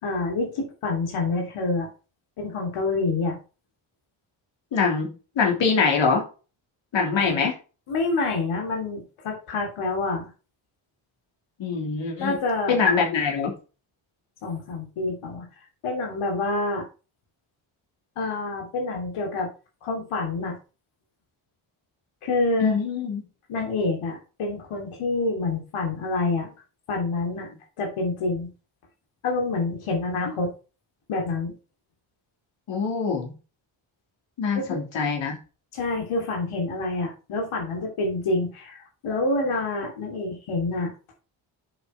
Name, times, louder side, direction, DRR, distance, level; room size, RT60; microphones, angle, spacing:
voice 1, 0.0-1.9 2.4-3.4 7.1-7.4 7.9-10.3 12.2-12.8 14.4-15.4 15.8-16.8 18.2-19.5 19.8-20.6 22.2-22.8 23.5-26.5 26.9-27.5 27.8-28.5 29.2-30.5 31.1-31.5 34.5-34.8 35.7-40.9, left 3 dB, 85° left, 1 dB, 3.1 m, -27 dB
voice 2, 4.7-5.1 5.4-6.2 6.9-7.5 11.6-12.4 12.7-13.5 22.6-23.2 32.7-33.3 34.4-35.4, left 5 dB, 65° left, 0 dB, 3.2 m, -23 dB
7.9 x 6.4 x 4.4 m, 0.33 s
cardioid pair, 120°, 49 cm